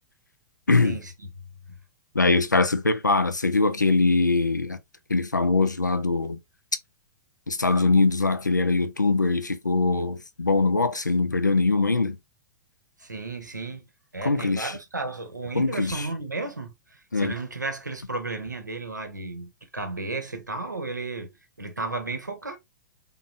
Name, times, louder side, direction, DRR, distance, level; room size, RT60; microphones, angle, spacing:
voice 1, 0.7-1.0 2.1-4.8 5.1-6.4 7.5-12.2 14.2-14.7 15.5-16.1 17.1-17.3, left 3 dB, 90° left, 0.6 m, -22 dB
voice 2, 13.0-22.6, right 3 dB, 90° right, 1.1 m, -34 dB
4.0 x 3.8 x 2.5 m
figure-of-eight pair, 105°, 9 cm